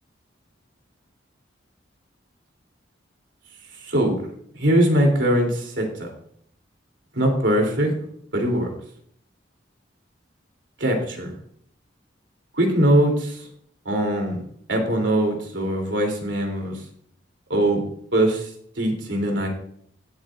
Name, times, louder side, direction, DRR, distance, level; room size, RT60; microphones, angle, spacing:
voice 1, 3.8-4.2 4.5-6.1 7.1-7.9 8.3-8.7 10.8-11.3 12.5-13.5 13.8-14.4 14.7-16.8 17.5-17.8 18.1-18.5 18.8-19.5, right 1 dB, 70° right, 1 dB, 3.1 m, -21 dB
17.0 x 8.1 x 2.5 m, 0.64 s
head